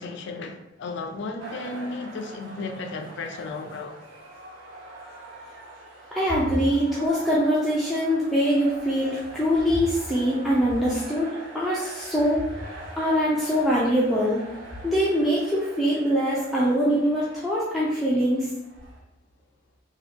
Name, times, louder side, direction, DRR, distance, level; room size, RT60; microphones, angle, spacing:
voice 1, 0.0-4.0, left 3 dB, 60° left, 0.4 m, -34 dB
sound 1, 1.4-19.0, right 1 dB, 85° right, 1.2 m, -44 dB
voice 2, 6.1-12.5 13.0-14.4 14.8-18.5, equal, ahead, 0.4 m, -23 dB
2.9 x 2.3 x 3.3 m
head